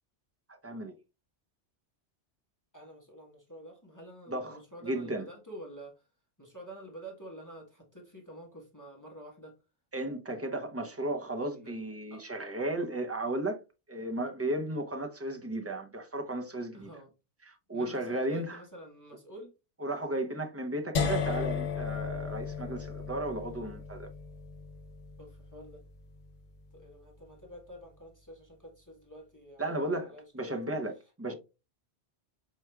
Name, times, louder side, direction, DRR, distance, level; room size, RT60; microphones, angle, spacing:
voice 1, 2.7-6.1 6.4-9.6 11.5-11.7 12.1-12.2 16.7-17.1 17.7-19.5 25.2-25.8 26.7-30.8 31.3-31.4, right 1 dB, 15° left, 1.0 m, -48 dB
voice 2, 4.3-5.2 9.9-13.6 13.9-16.9 17.4-18.6 19.8-24.1 29.6-31.3, right 1 dB, 25° right, 0.3 m, -34 dB
sound 1, 20.9-26.9, left 6 dB, 65° left, 0.9 m, -35 dB
4.8 x 4.6 x 2.2 m
omnidirectional pair, 1.2 m